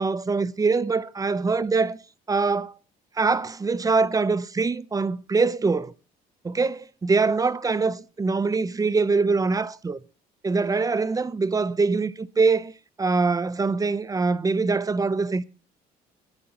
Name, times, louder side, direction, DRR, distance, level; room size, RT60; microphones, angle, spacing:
voice 1, 0.0-2.0 2.3-2.7 3.2-5.9 6.4-10.0 10.4-12.7 13.0-15.4, right 4 dB, 20° right, 0.8 m, -23 dB
24.5 x 10.5 x 3.0 m
cardioid pair, 110°, 17 cm